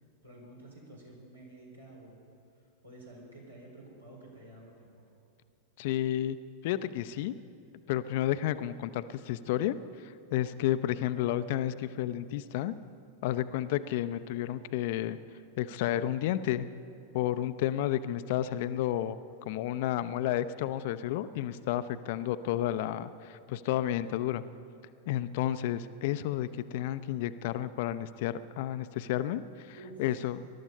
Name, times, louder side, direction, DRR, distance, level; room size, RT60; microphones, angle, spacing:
voice 1, 0.2-2.2 2.6-5.1 11.1-11.2 29.7-30.0, right 2 dB, 85° right, -3 dB, 4.4 m, -51 dB
voice 2, 5.8-6.4 6.6-7.3 7.9-9.8 10.0-12.7 13.2-15.2 15.6-16.7 17.1-19.2 19.4-24.4 25.1-30.5, left 12 dB, 50° left, 13 dB, 0.5 m, -31 dB
21.0 x 12.0 x 5.4 m, 2.6 s
figure-of-eight pair, 90°, 0 cm